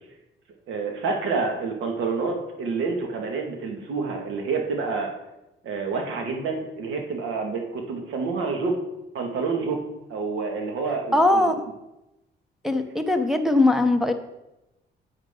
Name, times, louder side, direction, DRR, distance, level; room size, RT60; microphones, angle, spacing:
voice 1, 0.7-5.1 5.6-8.7 9.1-9.8 10.1-11.5, right 4 dB, 80° right, 2 dB, 2.0 m, -28 dB
voice 2, 11.1-11.6 12.6-14.1, left 2 dB, ahead, 4 dB, 0.9 m, -20 dB
9.9 x 8.0 x 3.8 m, 0.93 s
cardioid pair, 90°, 20 cm